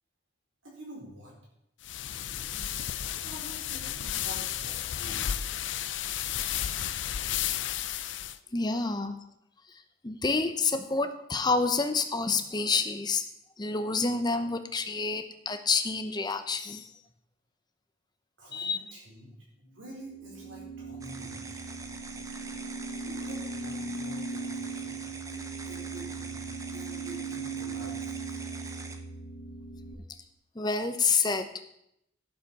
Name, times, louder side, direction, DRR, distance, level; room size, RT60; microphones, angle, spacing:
voice 1, 0.6-1.3 2.3-2.9 3.2-5.5 8.9-9.0 18.4-21.7 23.0-26.4 26.7-28.4, equal, 75° right, -3 dB, 4.5 m, -47 dB
sound 1, 1.8-8.4, left 11 dB, 65° left, 0.5 m, -33 dB
voice 2, 8.5-9.2 9.7-13.3 13.6-17.0 18.5-18.8 30.5-31.5, left 4 dB, 20° left, 9 dB, 0.7 m, -28 dB
sound 2, 19.8-29.9, right 4 dB, 45° left, 1.3 m, -39 dB
sound 3, 21.0-29.0, right 3 dB, 15° right, 0.8 m, -44 dB
11.5 x 7.2 x 5.4 m, 0.79 s
head